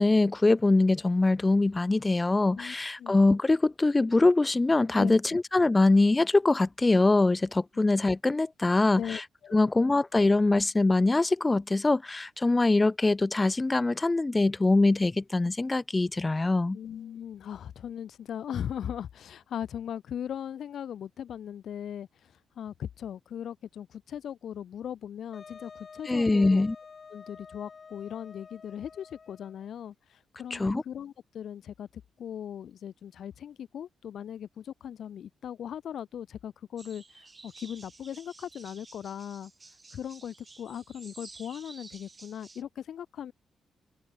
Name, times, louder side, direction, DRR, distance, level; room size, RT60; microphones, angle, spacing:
voice 1, 0.0-9.2 9.5-16.8 26.1-26.8 30.5-30.8, left 2 dB, 25° left, 0.3 m, -23 dB
voice 2, 2.5-3.1 5.0-5.2 9.0-9.7 16.7-26.6 27.1-39.5 39.9-43.3, left 9 dB, 70° left, 0.7 m, -39 dB
Wind instrument woodwind instrument, 25.3-29.7, left 5 dB, 45° left, 2.3 m, -49 dB
sound 1, 36.8-42.6, right 3 dB, 30° right, 6.5 m, -52 dB
open air
supercardioid pair, 55°, 0 cm